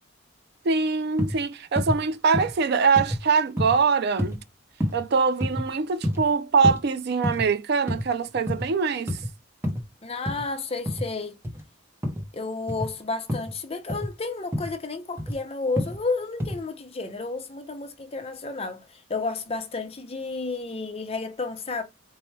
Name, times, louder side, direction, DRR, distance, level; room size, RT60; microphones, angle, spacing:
voice 1, 0.6-4.4 4.9-9.2, right 5 dB, 50° right, 0.4 m, -23 dB
sound 1, 1.2-1.4 1.8-2.0 2.3-2.6 3.0-3.2 3.6-3.8 4.2-4.4 4.8-5.1 5.4-5.7 6.0-6.2 6.6-6.8 7.2-7.5 7.9-8.1 8.3-8.7 9.1-9.3 9.6-9.8 10.3-10.4 10.9-11.1 11.4-11.6 12.0-12.3 12.7-12.9 13.3-13.5 13.9-14.1 14.5-14.7 15.2-15.4 15.8-16.0 16.4-16.6, equal, 10° right, 0.7 m, -28 dB
voice 2, 10.0-11.3 12.3-21.8, left 3 dB, 30° left, 0.6 m, -31 dB
4.5 x 2.1 x 3.2 m
head